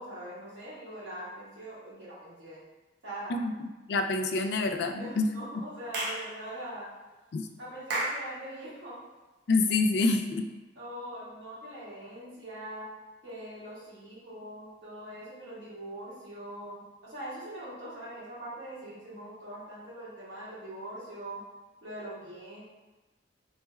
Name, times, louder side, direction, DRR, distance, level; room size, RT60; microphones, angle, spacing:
voice 1, 0.0-2.6 3.0-3.4 4.9-6.9 7.6-9.0 10.7-12.9 13.2-21.4 21.8-22.6, right 1 dB, 85° right, -8 dB, 1.5 m, -42 dB
voice 2, 3.9-5.3 7.3-7.5 9.5-10.5, left 3 dB, 65° left, 5 dB, 0.4 m, -27 dB
Clapping / Chirp tweet, 5.9-6.3 7.9-8.2, right 2 dB, 65° right, 0.7 m, -31 dB
3.2 x 2.2 x 4.3 m, 1.2 s
head